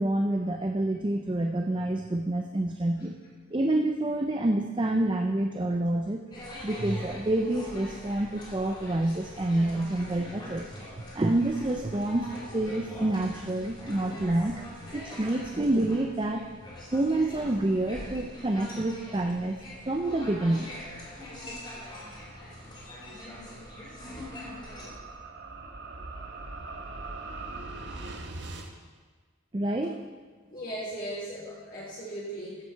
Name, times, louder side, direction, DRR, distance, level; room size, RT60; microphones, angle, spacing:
voice 1, 0.0-3.1 3.5-6.2 6.6-10.7 11.1-14.5 14.9-16.4 16.9-19.6 19.8-20.7 29.5-30.0, right 1 dB, 25° right, 4 dB, 0.5 m, -27 dB
sound 1, 6.3-24.9, left 1 dB, 25° left, 2.8 m, -43 dB
sound 2, 20.9-28.7, right 3 dB, 55° right, 1.1 m, -42 dB
voice 2, 30.5-32.6, right 1 dB, 45° left, -7 dB, 2.0 m, -37 dB
15.0 x 7.6 x 4.5 m, 1.4 s
head